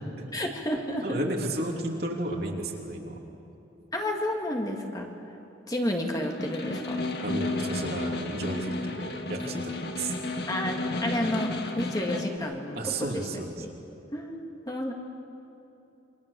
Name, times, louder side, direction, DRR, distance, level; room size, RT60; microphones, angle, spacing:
voice 1, 0.3-1.3 3.9-5.1 5.7-7.0 10.5-13.2 13.6-13.7 14.1-14.4 14.7-14.9, left 1 dB, 20° left, 1 dB, 2.1 m, -31 dB
voice 2, 1.0-3.2 7.2-10.1 12.8-13.6, right 2 dB, 55° right, 0 dB, 3.1 m, -33 dB
Snare drum, 6.2-12.4, left 2 dB, 60° left, 1.8 m, -32 dB
27.5 x 24.5 x 6.9 m, 3.0 s
head